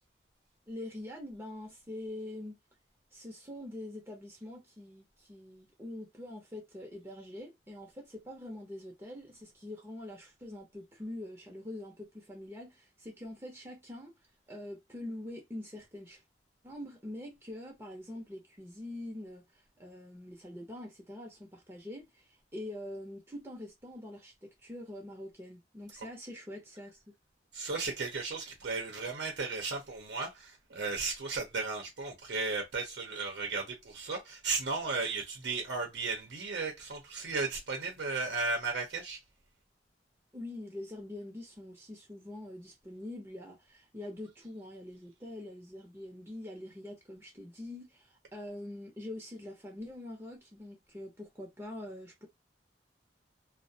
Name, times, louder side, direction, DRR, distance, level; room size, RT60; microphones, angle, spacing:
voice 1, 0.7-2.5 3.1-14.1 14.5-16.2 16.6-27.0 40.3-52.3, left 1 dB, 15° right, 0.6 m, -44 dB
voice 2, 27.5-39.2, right 4 dB, 85° right, 0.7 m, -35 dB
2.4 x 2.0 x 2.6 m
head